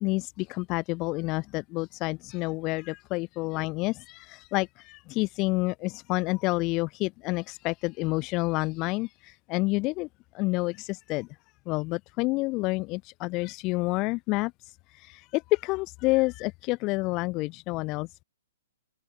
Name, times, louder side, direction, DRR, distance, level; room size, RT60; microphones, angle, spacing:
voice 1, 0.0-10.1 10.3-11.3 11.7-18.2, left 23 dB, 30° left, 0.5 m, -29 dB
open air
hypercardioid pair, 135°, 0 cm